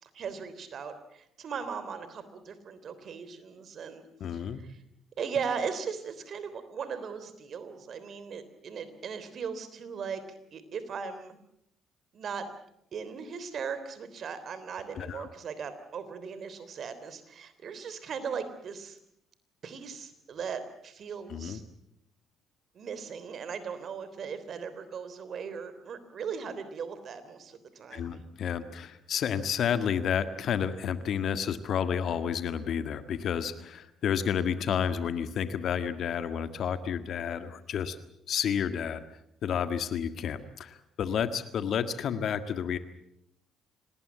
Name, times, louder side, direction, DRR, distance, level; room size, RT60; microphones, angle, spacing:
voice 1, 0.0-4.8 5.2-10.2 10.5-11.4 12.1-12.5 12.9-19.0 19.6-21.6 22.7-28.2, right 6 dB, 55° right, 12 dB, 3.4 m, -38 dB
voice 2, 4.2-4.6 15.0-15.3 21.3-21.6 27.9-38.0 38.3-39.0 39.4-42.8, left 8 dB, 60° left, 10 dB, 1.7 m, -30 dB
26.5 x 19.5 x 7.3 m, 0.76 s
hypercardioid pair, 50°, 0 cm